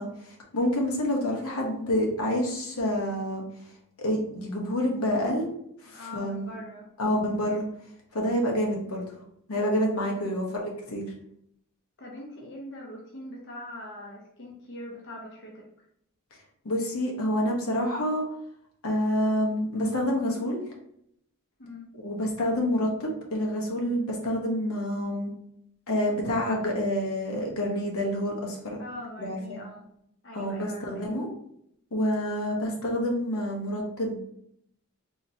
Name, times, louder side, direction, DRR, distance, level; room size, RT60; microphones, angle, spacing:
voice 1, 0.0-3.4 4.0-5.5 5.8-6.6 7.0-7.6 8.1-9.1 9.5-11.0 16.6-18.2 18.8-20.6 21.9-25.3 25.9-28.8 29.2-29.6 30.3-31.3 31.9-34.3, equal, 85° left, 0 dB, 1.0 m, -28 dB
voice 2, 5.9-6.9 10.1-10.2 12.0-15.7 21.6-21.9 28.8-29.9 30.2-31.1, left 1 dB, 55° left, -1 dB, 0.7 m, -42 dB
3.7 x 2.8 x 2.7 m, 0.72 s
head